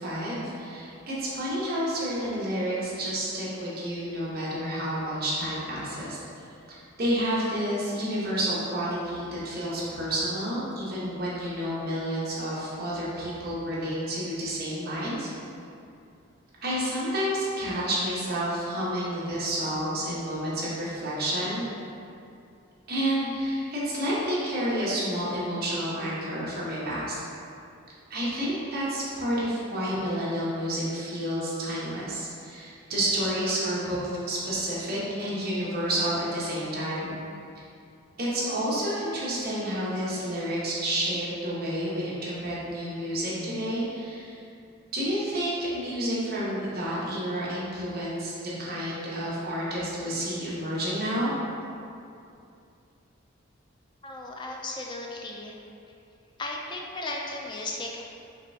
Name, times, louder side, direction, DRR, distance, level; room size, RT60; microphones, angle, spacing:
voice 1, 0.0-6.2 6.7-15.3 16.6-21.6 22.9-27.2 28.1-37.1 37.6-37.7 38.2-44.3 44.9-51.3, equal, 45° right, -8 dB, 1.0 m, -30 dB
voice 2, 54.0-55.6 56.4-58.0, left 2 dB, 20° left, 0 dB, 0.4 m, -35 dB
5.2 x 3.3 x 2.7 m, 2.6 s
head